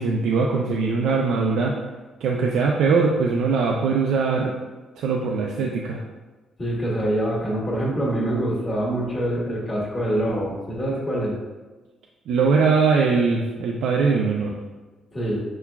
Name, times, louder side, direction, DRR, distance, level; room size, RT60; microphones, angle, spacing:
voice 1, 0.0-1.7 2.2-4.5 5.0-6.0 12.3-14.5, right 4 dB, 80° right, -1 dB, 0.3 m, -21 dB
voice 2, 6.6-11.3 15.1-15.4, right 1 dB, 30° left, -5 dB, 1.4 m, -25 dB
5.7 x 2.3 x 2.3 m, 1.2 s
cardioid pair, 90°, 0 cm